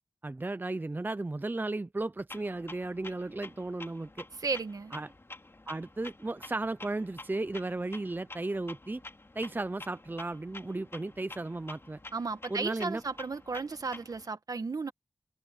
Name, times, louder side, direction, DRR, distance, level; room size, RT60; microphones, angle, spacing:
voice 1, 0.2-4.3 4.9-5.1 5.7-9.0 9.4-12.0 12.5-13.0, right 2 dB, 30° right, 0.6 m, -35 dB
Clock, 2.3-14.3, left 2 dB, 40° left, 2.8 m, -49 dB
voice 2, 4.4-4.9 12.1-14.9, right 4 dB, 70° right, 1.8 m, -34 dB
open air
cardioid pair, 45°, 6 cm